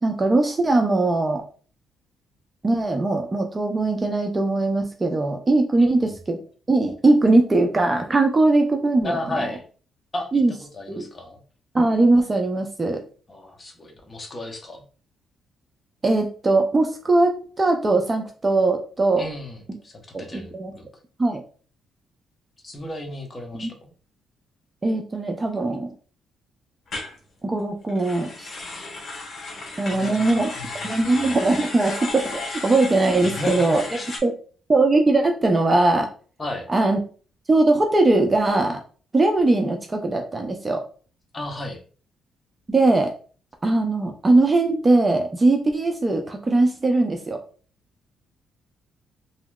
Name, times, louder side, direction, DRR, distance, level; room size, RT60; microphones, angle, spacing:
voice 1, 0.0-1.4 2.6-6.4 6.7-9.5 10.3-10.5 10.9-11.0 11.7-13.0 16.0-19.2 20.1-20.7 21.2-21.4 23.5-23.7 24.8-25.9 27.4-28.5 29.8-30.5 30.8-33.8 34.2-34.3 34.7-36.1 36.7-37.0 37.5-38.8 39.1-40.8 42.7-43.1 43.6-47.4, right 2 dB, 25° right, 4 dB, 0.5 m, -20 dB
voice 2, 9.0-9.6 10.1-11.4 13.3-14.8 19.2-20.8 22.6-23.9 29.9-30.3 30.6-31.3 33.2-34.1 36.4-36.7 41.3-41.8, left 1 dB, 25° left, 2 dB, 0.8 m, -33 dB
sound 1, 26.9-27.1 27.9-34.2, left 3 dB, 50° left, 1.2 m, -34 dB
3.1 x 2.8 x 2.3 m, 0.40 s
cardioid pair, 90°, 0 cm